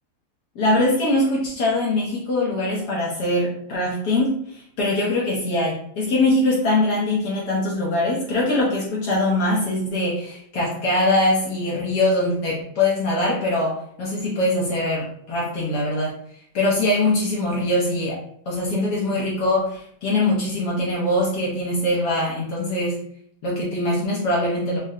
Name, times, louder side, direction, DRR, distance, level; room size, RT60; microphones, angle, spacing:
voice 1, 0.5-16.1 16.5-18.2 18.5-23.0 23.4-24.8, left 1 dB, 70° left, -4 dB, 1.3 m, -22 dB
4.7 x 2.1 x 2.7 m, 0.67 s
omnidirectional pair, 1.9 m